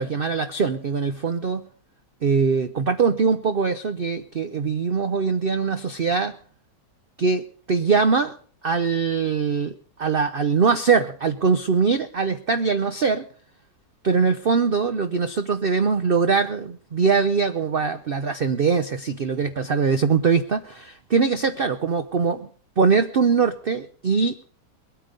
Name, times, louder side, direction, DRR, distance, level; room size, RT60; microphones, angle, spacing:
voice 1, 0.0-1.6 2.2-6.4 7.2-7.4 7.7-8.3 8.6-13.2 14.0-22.5 22.8-24.4, right 5 dB, 65° right, 9 dB, 0.5 m, -22 dB
21.5 x 9.0 x 5.2 m, 0.43 s
omnidirectional pair, 2.0 m